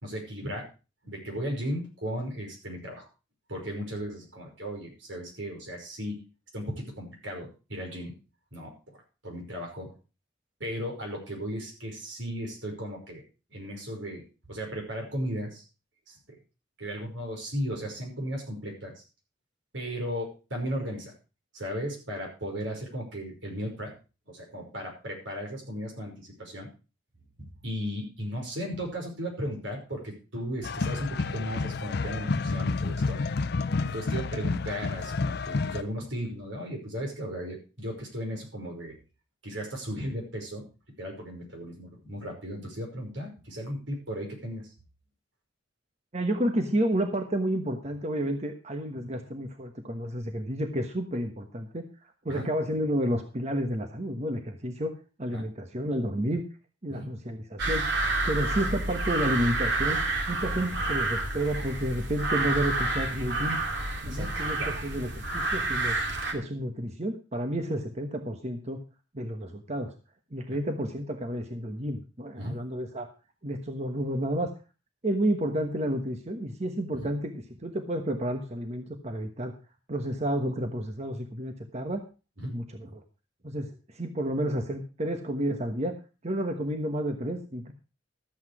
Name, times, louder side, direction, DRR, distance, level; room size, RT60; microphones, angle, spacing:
voice 1, 0.0-0.7 1.0-3.1 3.5-6.2 6.5-8.2 8.5-9.9 10.6-13.2 13.5-15.6 16.1-16.2 16.8-19.0 19.7-21.1 21.5-23.9 24.3-26.7 27.4-33.2 33.8-39.0 39.4-40.7 41.0-44.7 49.0-49.1 52.3-52.5 55.3-55.4 56.9-57.1 64.1-64.8 70.5-70.6 72.4-72.6 76.9-77.1 82.4-82.5, equal, 85° right, 1 dB, 5.5 m, -36 dB
sound 1, 30.6-35.8, left 3 dB, 60° left, 0.6 m, -30 dB
voice 2, 46.1-51.9 52.2-56.4 56.8-58.0 58.3-60.0 60.3-63.6 64.0-66.0 66.3-68.8 69.1-69.9 70.3-73.1 73.4-74.5 75.0-79.5 79.9-82.0 82.4-82.6 82.9-83.0 83.4-85.9 86.2-87.7, right 1 dB, 35° right, 5 dB, 1.2 m, -31 dB
sound 2, 57.6-66.3, right 2 dB, 65° right, 2.7 m, -29 dB
13.0 x 8.0 x 4.8 m, 0.32 s
head